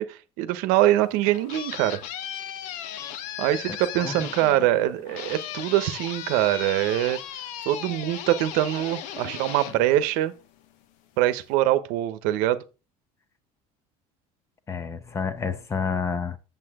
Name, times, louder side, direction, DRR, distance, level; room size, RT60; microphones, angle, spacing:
voice 1, 0.0-2.0 3.4-7.2 7.6-10.3 11.2-12.6, right 14 dB, 80° right, 1.0 m, -23 dB
sound 1, 1.0-10.6, left 10 dB, 65° left, 0.9 m, -37 dB
voice 2, 14.7-16.4, left 5 dB, 20° left, 0.7 m, -29 dB
8.0 x 7.3 x 3.6 m
cardioid pair, 170°, 14 cm